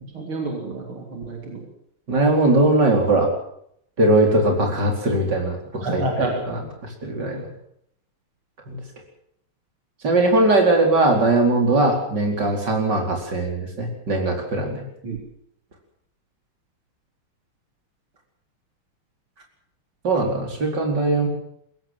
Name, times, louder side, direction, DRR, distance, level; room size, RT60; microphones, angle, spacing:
voice 1, 0.1-1.7 5.8-6.3 15.0-15.2, right 2 dB, 75° right, 2 dB, 4.1 m, -28 dB
voice 2, 2.1-3.3 4.0-7.5 8.7-8.8 10.0-14.8 20.0-21.3, right 2 dB, 50° right, 2 dB, 5.1 m, -20 dB
22.0 x 16.5 x 7.5 m, 0.71 s
omnidirectional pair, 2.3 m